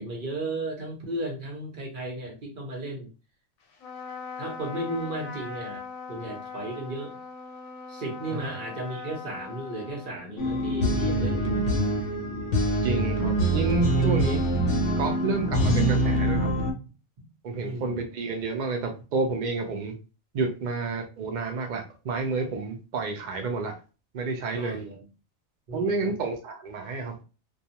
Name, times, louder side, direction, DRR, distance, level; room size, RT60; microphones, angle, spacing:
voice 1, 0.0-3.1 4.4-5.8 6.1-7.2 7.9-11.7 17.6-18.0 24.5-25.0 25.7-26.2, right 2 dB, 45° right, 0 dB, 0.8 m, -35 dB
Trumpet, 3.7-10.6, left 5 dB, 85° left, 1.1 m, -40 dB
sound 1, 10.4-16.7, right 1 dB, 65° left, 0.9 m, -24 dB
voice 2, 12.8-14.4 15.0-16.5 17.4-19.9 20.3-23.8 24.1-24.8 25.7-27.2, right 4 dB, 85° right, 4 dB, 0.4 m, -30 dB
2.4 x 2.3 x 2.8 m, 0.32 s
omnidirectional pair, 1.4 m